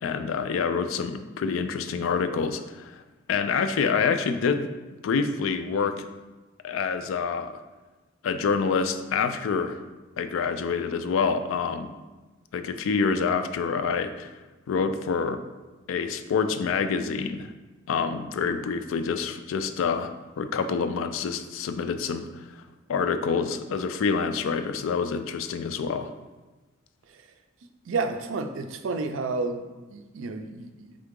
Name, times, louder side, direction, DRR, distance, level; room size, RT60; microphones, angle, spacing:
voice 1, 0.0-3.0 3.3-4.6 5.0-6.1 6.6-7.6 8.2-9.8 10.2-11.9 12.5-14.3 14.7-15.4 15.9-17.5 17.9-22.6 22.9-26.1, left 5 dB, 75° left, 10 dB, 0.3 m, -27 dB
voice 2, 27.9-31.0, right 3 dB, 70° right, 7 dB, 0.4 m, -31 dB
3.8 x 3.6 x 3.6 m, 1.2 s
head